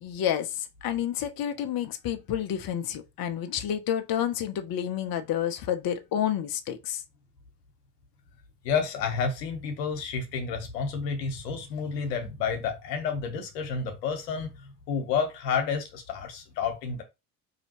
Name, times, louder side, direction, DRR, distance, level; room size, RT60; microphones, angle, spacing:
voice 1, 0.0-7.0, left 10 dB, 45° left, 0.8 m, -29 dB
voice 2, 8.6-17.0, left 6 dB, 85° left, 1.1 m, -30 dB
4.9 x 2.8 x 2.9 m
hypercardioid pair, 65°, 49 cm